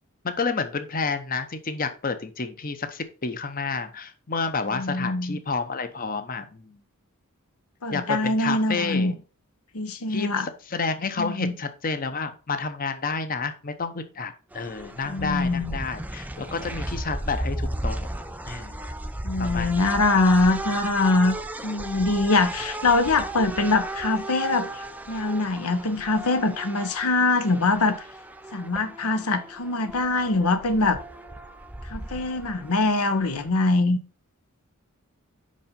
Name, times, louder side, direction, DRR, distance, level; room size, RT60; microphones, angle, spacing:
voice 1, 0.2-6.8 7.9-9.2 10.1-18.1 18.5-18.8 19.4-20.2, left 4 dB, 40° left, 0.8 m, -30 dB
voice 2, 4.7-5.4 7.8-9.1 9.7-10.5 11.2-11.5 15.1-15.8 19.2-21.4 21.6-28.0 28.5-31.0 31.9-34.0, left 2 dB, 85° left, 1.0 m, -23 dB
sound 1, 14.5-33.5, right 1 dB, 5° right, 0.5 m, -35 dB
5.5 x 5.3 x 5.2 m
head